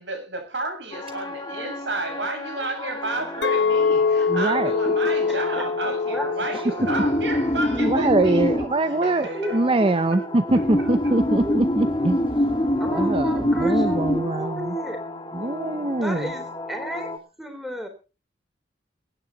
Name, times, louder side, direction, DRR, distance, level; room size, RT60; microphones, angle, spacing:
voice 1, 0.0-8.5 8.8-9.7 10.1-10.2, right 2 dB, 70° right, 7.8 m, -31 dB
sound 1, 0.9-17.2, left 1 dB, 25° left, 1.9 m, -27 dB
Chink clink, 3.4-7.8 8.1-8.5, left 5 dB, 70° left, 0.8 m, -25 dB
voice 2, 4.3-4.7 7.7-12.2 12.9-14.8 15.3-16.3, right 2 dB, 30° right, 0.7 m, -23 dB
voice 3, 4.9-6.6 6.9-7.0 9.3-9.5 10.1-10.6 11.4-11.6 12.8-15.0 16.0-17.1 17.4-17.9, equal, ahead, 3.7 m, -33 dB
23.0 x 9.8 x 4.0 m
head